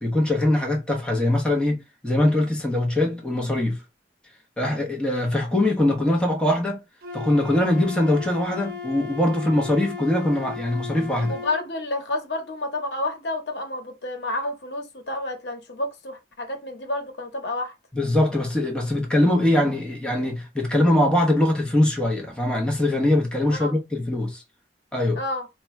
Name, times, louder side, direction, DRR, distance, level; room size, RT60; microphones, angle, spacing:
voice 1, 0.0-3.8 4.6-6.8 7.1-11.4 17.9-24.4 24.9-25.2, left 1 dB, 5° left, 1.0 m, -22 dB
Wind instrument woodwind instrument, 7.0-11.6, left 5 dB, 55° right, 0.6 m, -36 dB
voice 2, 11.3-17.7 23.6-23.7 25.1-25.5, left 2 dB, 70° left, 1.0 m, -30 dB
2.9 x 2.3 x 4.2 m
head